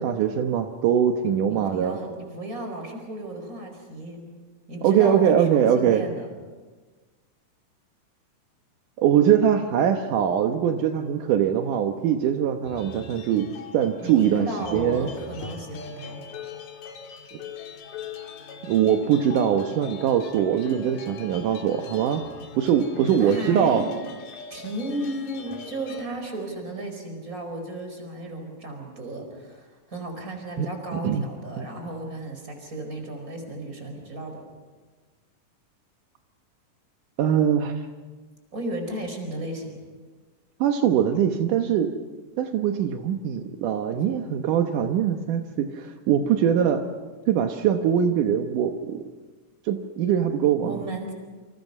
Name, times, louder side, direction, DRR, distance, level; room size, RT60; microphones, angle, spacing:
voice 1, 0.0-2.0 4.8-6.0 9.0-13.5 13.7-15.1 18.6-22.3 22.6-23.9 30.6-31.2 31.6-31.7 37.2-37.7 40.6-41.9 42.4-46.8 47.3-49.0 49.7-50.7, right 9 dB, 80° right, 5 dB, 2.6 m, -22 dB
voice 2, 1.5-4.2 4.7-6.3 14.0-16.3 23.0-23.9 24.5-34.4 38.5-39.8 50.6-51.1, right 1 dB, 25° right, 4 dB, 5.0 m, -34 dB
sound 1, 12.6-26.1, left 5 dB, 90° left, 3.7 m, -41 dB
28.5 x 26.5 x 5.5 m, 1.3 s
omnidirectional pair, 3.7 m